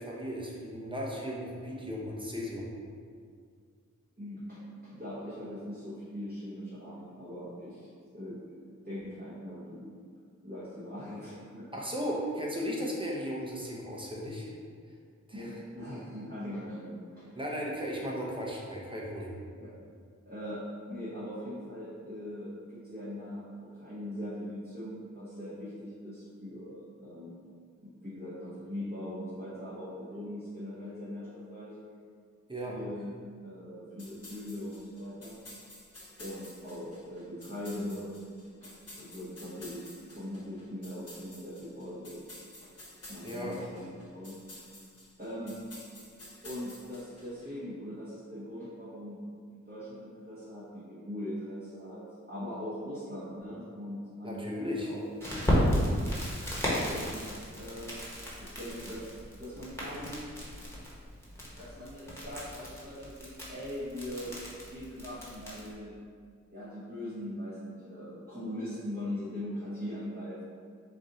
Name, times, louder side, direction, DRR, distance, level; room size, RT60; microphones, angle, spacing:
voice 1, 0.0-2.7 11.7-14.5 15.3-15.5 17.3-19.3 32.5-32.8 43.2-43.6 54.2-54.9, equal, 15° right, -4 dB, 1.0 m, -36 dB
voice 2, 4.2-9.9 10.4-11.7 15.3-17.4 19.6-19.7 20.2-27.4 27.8-31.8 32.7-33.1 33.4-35.4 36.2-38.2 38.5-42.2 42.6-42.7 43.1-44.4 45.2-45.6 46.4-55.1 56.8-58.0 58.4-60.2 61.5-64.3 64.7-66.0 66.5-70.4, left 1 dB, 30° right, -11 dB, 1.4 m, -41 dB
sound 1, 34.0-47.5, left 1 dB, 55° left, 1.1 m, -51 dB
Crackle, 55.2-65.7, equal, 10° left, 1.4 m, -34 dB
4.7 x 2.6 x 4.0 m, 2.1 s
wide cardioid pair, 60°, 30 cm